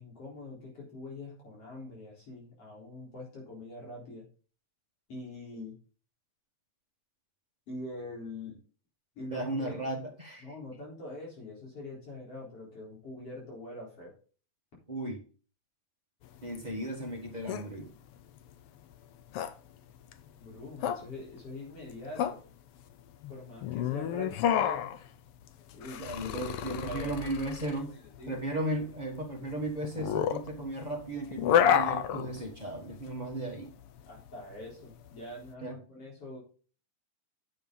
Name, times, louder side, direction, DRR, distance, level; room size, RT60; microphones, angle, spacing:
voice 1, 0.0-4.3 5.1-5.8 7.7-8.6 9.2-9.8 10.4-14.1 20.4-22.4 23.3-24.9 25.7-26.0 26.9-27.3 27.7-27.9 28.2-28.4 34.1-36.4, left 1 dB, 45° left, -4 dB, 5.0 m, -44 dB
voice 2, 9.3-10.5 14.9-15.2 16.4-17.9 26.0-27.9 28.3-33.8 35.6-35.8, right 1 dB, 45° right, 1 dB, 0.5 m, -35 dB
sound 1, 16.2-35.5, left 9 dB, 75° left, 1.3 m, -32 dB
9.9 x 7.6 x 3.9 m, 0.39 s
omnidirectional pair, 3.5 m